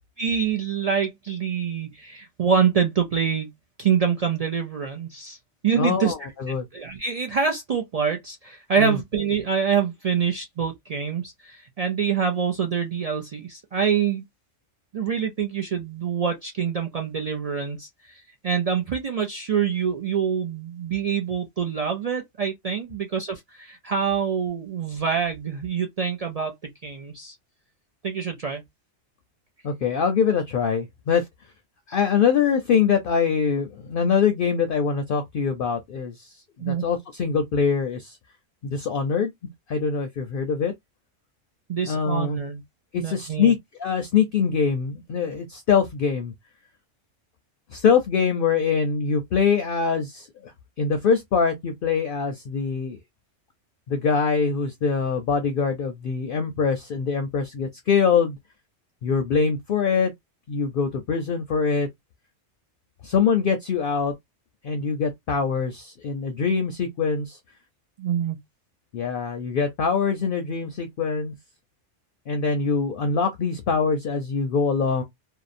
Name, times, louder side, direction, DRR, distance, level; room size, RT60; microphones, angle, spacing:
voice 1, 0.2-3.5 3.8-5.4 5.6-6.1 6.5-14.2 14.9-27.3 28.0-28.6 36.6-36.8 41.7-42.6 43.0-43.5 68.0-68.4, right 7 dB, 65° right, 0.3 m, -26 dB
voice 2, 5.8-6.7 8.8-9.0 29.6-31.2 31.9-38.2 38.6-39.3 39.7-40.7 41.9-42.4 42.9-46.3 47.7-50.5 50.8-53.0 53.9-58.4 59.0-60.1 60.5-61.9 63.0-64.1 64.6-67.4 68.9-71.3 72.3-75.0, left 6 dB, 60° left, 0.6 m, -23 dB
2.7 x 2.0 x 2.5 m
omnidirectional pair, 1.2 m